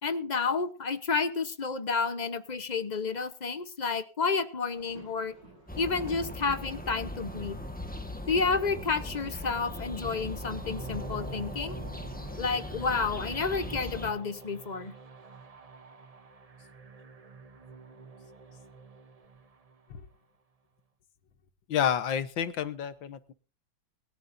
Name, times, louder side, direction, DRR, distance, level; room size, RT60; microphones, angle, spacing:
voice 1, 0.0-5.3 5.8-7.6 8.3-11.8 12.4-14.9, left 4 dB, 30° left, 10 dB, 0.8 m, -30 dB
sound 1, 4.7-10.9, right 2 dB, 70° right, 7.7 m, -56 dB
sound 2, 5.7-14.1, left 1 dB, 5° left, 1.2 m, -39 dB
sound 3, 9.9-20.0, right 4 dB, 40° right, 0.5 m, -47 dB
voice 2, 21.7-23.3, left 9 dB, 85° left, 12 dB, 1.9 m, -29 dB
22.0 x 13.0 x 2.7 m, 0.34 s
omnidirectional pair, 2.0 m